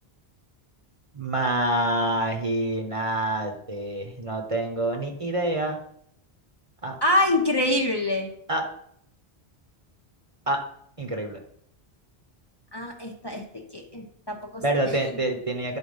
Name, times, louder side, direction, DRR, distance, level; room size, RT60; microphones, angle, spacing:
voice 1, 1.1-5.8 6.8-6.9 8.5-8.7 10.5-10.6 11.0-11.4 14.6-15.8, right 1 dB, 35° right, 3 dB, 1.0 m, -26 dB
voice 2, 7.0-8.3 12.7-13.4 13.7-14.6, left 1 dB, 25° left, 1 dB, 0.8 m, -25 dB
10.0 x 4.2 x 5.6 m, 0.69 s
omnidirectional pair, 1.1 m